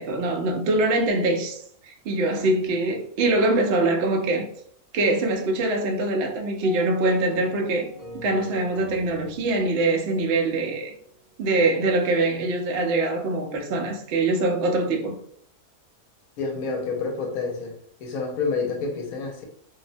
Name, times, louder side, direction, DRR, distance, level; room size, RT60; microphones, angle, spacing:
voice 1, 0.0-4.5 4.9-7.9 8.1-10.9 11.4-15.2, right 2 dB, 85° right, 0.5 m, -23 dB
sound 1, 6.6-11.3, right 2 dB, 45° left, 0.6 m, -42 dB
voice 2, 16.4-17.7 18.0-19.4, left 4 dB, 75° left, 1.0 m, -28 dB
2.7 x 2.0 x 2.5 m
omnidirectional pair, 1.6 m